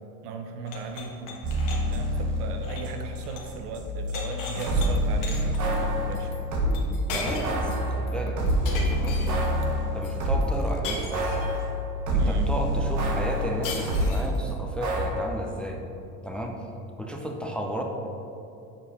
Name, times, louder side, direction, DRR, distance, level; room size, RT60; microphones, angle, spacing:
voice 1, 0.2-6.4 12.2-12.5, right 3 dB, 80° right, 5 dB, 0.8 m, -37 dB
sound 1, 0.6-3.6 3.8-4.9 5.2-5.6 6.7-6.8 7.1-7.7 8.6-9.5 10.8-11.7 13.6-14.4, left 3 dB, 45° left, 1.3 m, -36 dB
sound 2, 1.4-6.8 7.4-10.6 11.1-14.2 14.8-15.1, equal, 40° right, 1.2 m, -27 dB
sound 3, 4.6-10.8, left 4 dB, 65° left, 0.7 m, -46 dB
voice 2, 7.1-8.4 8.7-9.4 9.9-11.4 12.1-15.8 16.2-16.5 17.0-17.8, equal, ahead, 1 dB, 0.4 m, -33 dB
7.1 x 4.2 x 3.5 m, 2.8 s
hypercardioid pair, 80°, 46 cm